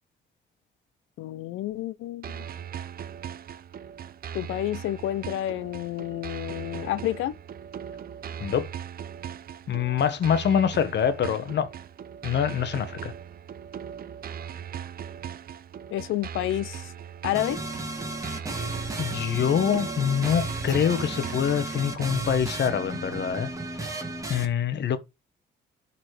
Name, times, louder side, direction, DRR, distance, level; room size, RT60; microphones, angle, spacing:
voice 1, 1.2-2.4 4.3-7.3 15.9-16.9 17.2-17.6, left 14 dB, 85° left, 0.6 m, -30 dB
sound 1, 2.2-22.2, right 8 dB, 50° right, 0.6 m, -39 dB
voice 2, 8.4-8.7 9.7-11.7 12.2-13.1 19.0-23.5 23.8-24.0 24.3-25.0, left 8 dB, 60° left, 1.2 m, -25 dB
sound 2, 17.3-24.5, right 2 dB, 15° right, 2.4 m, -34 dB
12.0 x 4.3 x 3.3 m
cardioid pair, 90°, 20 cm